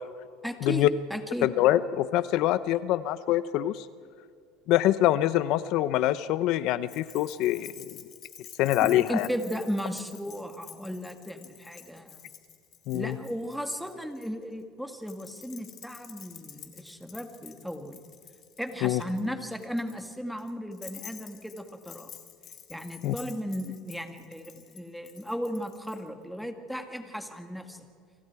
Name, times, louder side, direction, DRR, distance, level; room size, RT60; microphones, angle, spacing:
voice 1, 0.4-1.5 8.8-12.3 12.9-18.0 18.6-22.1 22.7-27.9, equal, ahead, 6 dB, 2.1 m, -35 dB
voice 2, 1.4-3.9 4.7-7.9 8.6-9.3 12.9-13.2 18.8-19.0 23.0-23.1, left 14 dB, 60° left, 15 dB, 0.7 m, -25 dB
Keys jangling, 6.9-14.3 15.0-26.0, left 9 dB, 40° left, 2.5 m, -49 dB
29.0 x 25.5 x 4.8 m, 2.4 s
supercardioid pair, 130°, 0 cm